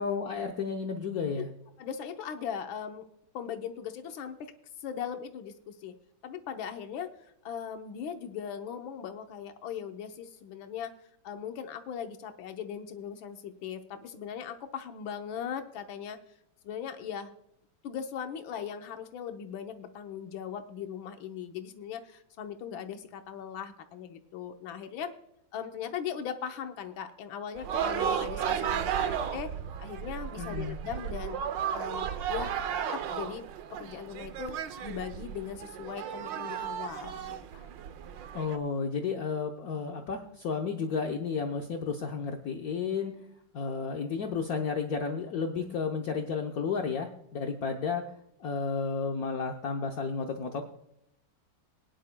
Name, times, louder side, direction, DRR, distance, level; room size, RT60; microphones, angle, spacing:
voice 1, 0.0-1.5 30.4-30.8 38.3-43.1 43.5-48.0 48.4-50.7, left 5 dB, 60° left, 2 dB, 1.2 m, -32 dB
voice 2, 1.8-3.1 3.3-4.5 4.8-5.9 6.2-11.0 11.2-16.2 16.6-17.3 17.8-25.1 25.5-29.5 29.8-31.4 31.7-32.5 32.9-33.5 33.8-37.7, left 8 dB, 85° left, 6 dB, 1.6 m, -39 dB
sound 1, 27.6-38.6, right 8 dB, 75° right, 1.4 m, -34 dB
21.5 x 10.5 x 2.2 m, 0.79 s
omnidirectional pair, 2.1 m